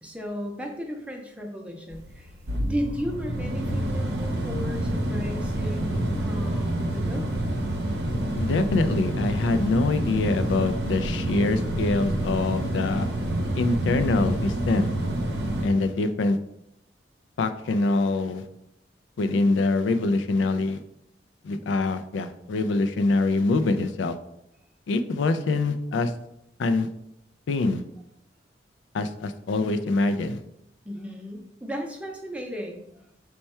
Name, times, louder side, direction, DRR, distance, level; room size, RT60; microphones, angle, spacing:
voice 1, 0.0-2.3 2.6-7.3 30.8-33.1, equal, 5° right, 1 dB, 0.5 m, -35 dB
sound 1, 1.9-15.7, right 1 dB, 65° right, 0.6 m, -28 dB
voice 2, 8.4-13.1 13.6-14.9 15.6-16.4 17.4-18.4 19.2-20.8 21.4-24.2 24.9-26.1 26.6-26.9 27.5-27.8 28.9-30.4, left 3 dB, 90° left, 9 dB, 0.3 m, -24 dB
4.4 x 2.2 x 4.2 m, 0.78 s
head